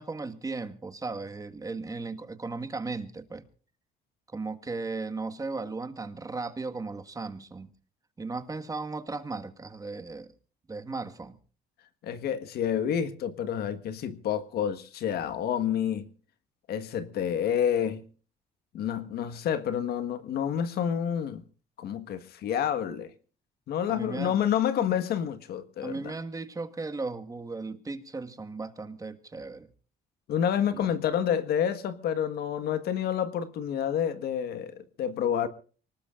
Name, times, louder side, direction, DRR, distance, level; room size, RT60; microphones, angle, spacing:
voice 1, 0.0-3.4 4.3-7.7 8.2-10.3 10.7-11.4 23.9-24.4 25.8-29.7 30.7-30.9, right 3 dB, 20° right, 1.7 m, -36 dB
voice 2, 12.0-16.1 16.7-18.0 18.7-21.4 21.8-23.1 23.7-26.1 30.3-35.5, left 9 dB, 70° left, 1.6 m, -29 dB
24.5 x 19.5 x 2.5 m
cardioid pair, 110°, 17 cm